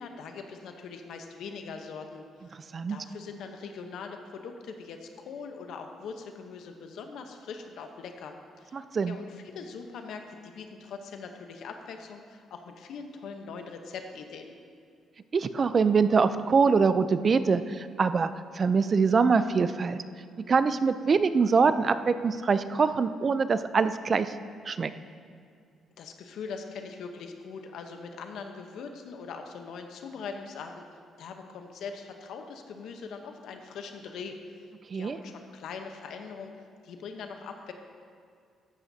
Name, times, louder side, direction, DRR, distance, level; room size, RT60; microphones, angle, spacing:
voice 1, 0.0-2.5 2.9-14.5 26.0-30.8 31.2-34.4 34.9-36.5 36.8-37.7, left 5 dB, 75° left, 5 dB, 0.9 m, -41 dB
voice 2, 8.7-9.2 15.3-18.3 18.5-20.0 20.4-24.3 24.7-24.9 34.9-35.2, right 5 dB, 40° right, 12 dB, 0.4 m, -24 dB
14.0 x 10.5 x 2.8 m, 2.3 s
cardioid pair, 90°, 0 cm